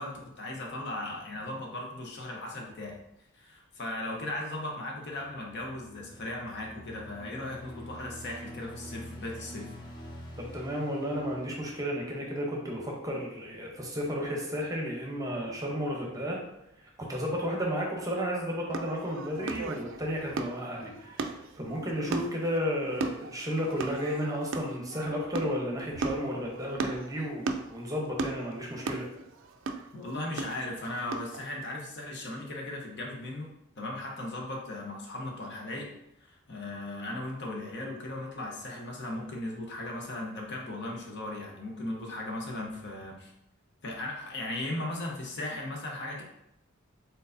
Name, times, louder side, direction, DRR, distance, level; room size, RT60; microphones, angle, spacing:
voice 1, 0.0-3.0 3.3-9.7 29.9-35.9 36.2-43.3 43.8-46.2, left 1 dB, 55° left, 0 dB, 0.9 m, -37 dB
sound 1, 5.1-12.4, equal, 20° left, 0.8 m, -46 dB
voice 2, 10.4-16.4 16.8-29.1, equal, 15° right, -1 dB, 0.8 m, -33 dB
sound 2, 18.7-31.4, right 4 dB, 60° right, 0.4 m, -37 dB
4.5 x 3.9 x 2.6 m, 0.82 s
head